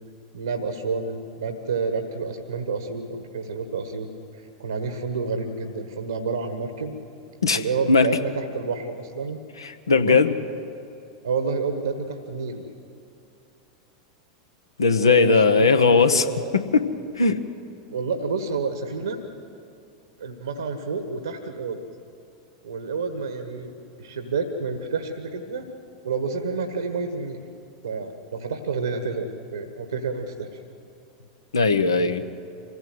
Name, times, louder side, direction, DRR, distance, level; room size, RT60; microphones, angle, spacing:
voice 1, 0.3-4.1 4.3-7.0 7.5-9.4 9.9-10.2 11.2-12.6 14.9-16.6 17.9-19.2 20.2-21.8 22.6-23.7 24.0-25.7 26.0-27.4 27.8-30.5, right 4 dB, 80° right, 7 dB, 1.4 m, -29 dB
voice 2, 9.6-10.3 14.8-16.3 16.5-16.9 17.2-17.4 31.5-32.2, left 4 dB, 80° left, 9 dB, 0.9 m, -18 dB
25.0 x 16.0 x 7.9 m, 2.7 s
figure-of-eight pair, 90°, 2 cm